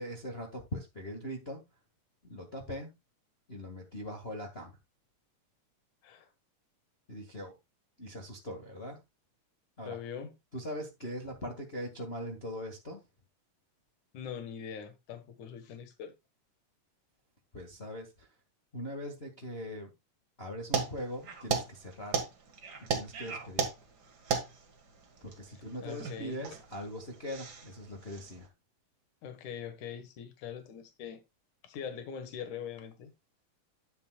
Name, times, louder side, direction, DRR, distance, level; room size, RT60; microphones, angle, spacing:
voice 1, 0.0-1.6 2.2-2.9 3.5-4.8 7.1-7.5 8.0-9.0 9.8-10.0 10.5-13.0 17.5-18.3 18.7-19.9 20.4-22.3 22.9-23.7 25.2-28.5, equal, 25° left, 1.4 m, -41 dB
voice 2, 9.8-10.3 14.1-16.1 25.8-26.5 29.2-31.2 31.6-33.1, left 8 dB, 70° left, 2.9 m, -42 dB
sound 1, 20.7-28.4, right 5 dB, 40° right, 1.8 m, -36 dB
11.0 x 9.3 x 2.3 m
omnidirectional pair, 3.8 m